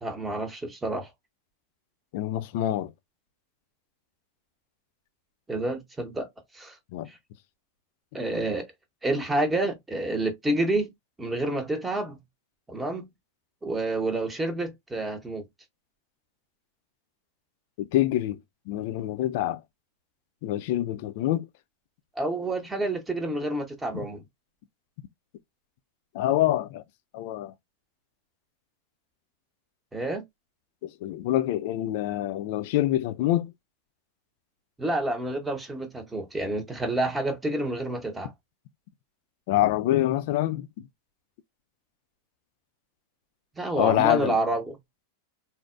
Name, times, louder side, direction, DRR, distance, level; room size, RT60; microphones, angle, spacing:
voice 1, 0.0-1.1 5.5-6.3 6.5-6.7 7.1-7.2 8.1-8.6 9.0-10.9 11.2-12.2 12.7-13.1 13.6-15.5 22.2-24.2 29.9-30.2 34.8-38.3 43.6-44.8, right 2 dB, 10° right, 0.8 m, -28 dB
voice 2, 2.1-2.9 6.9-7.1 17.8-18.4 18.7-19.6 20.4-21.5 23.9-24.0 26.1-26.8 27.1-27.5 30.8-33.5 39.5-40.9 43.8-44.4, left 13 dB, 50° left, 0.4 m, -26 dB
4.0 x 2.1 x 2.4 m
figure-of-eight pair, 90°, 0 cm